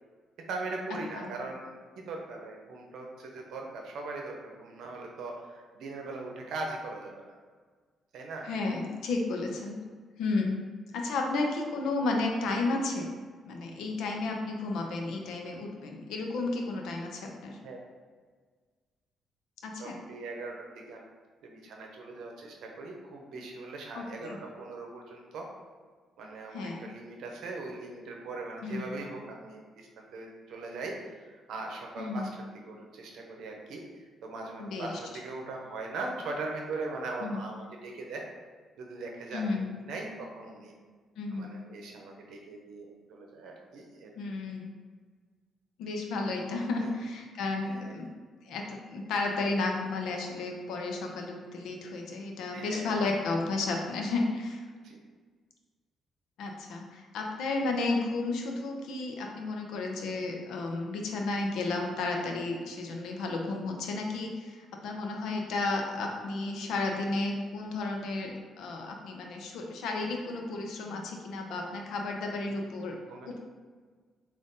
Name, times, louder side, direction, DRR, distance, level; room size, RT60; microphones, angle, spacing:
voice 1, 0.4-7.4 8.1-8.5 17.6-17.8 19.8-21.1 21.4-25.5 26.2-38.2 38.8-40.7 41.3-44.2 46.8-46.9 47.6-48.0 52.5-53.0 54.8-55.0 73.1-73.4, right 3 dB, 80° right, 1 dB, 0.7 m, -40 dB
voice 2, 8.4-9.8 10.2-10.6 10.9-13.1 13.4-17.6 19.6-20.0 23.9-24.4 26.5-26.8 28.6-28.9 32.0-32.3 34.6-35.0 37.2-37.4 39.3-39.7 41.2-41.5 44.2-44.7 45.8-48.1 48.4-54.6 56.4-73.0 73.3-73.4, left 3 dB, 80° left, 1 dB, 0.6 m, -32 dB
3.9 x 2.5 x 3.6 m, 1.5 s
cardioid pair, 90°, 0 cm